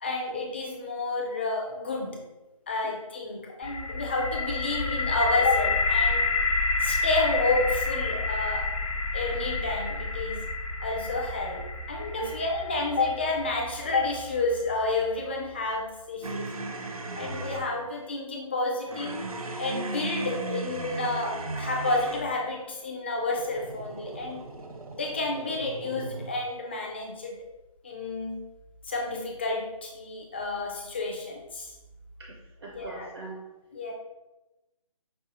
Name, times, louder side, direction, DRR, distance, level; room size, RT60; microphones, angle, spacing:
voice 1, 0.0-2.2 2.7-6.3 6.8-8.7 9.1-10.4 10.8-16.5 17.1-19.2 19.6-24.5 24.9-27.3 27.8-28.4 28.9-31.7 32.6-33.1 33.7-33.9, left 3 dB, 20° left, 0 dB, 0.4 m, -30 dB
sound 1, 3.6-15.5, left 3 dB, 70° left, 0.6 m, -29 dB
sound 2, 16.2-17.7 18.9-22.4 23.3-26.3, right 2 dB, 90° right, 0.6 m, -36 dB
voice 2, 32.2-33.4, right 3 dB, 45° right, -1 dB, 0.5 m, -40 dB
5.3 x 2.3 x 2.7 m, 1.0 s
hypercardioid pair, 160°, 18 cm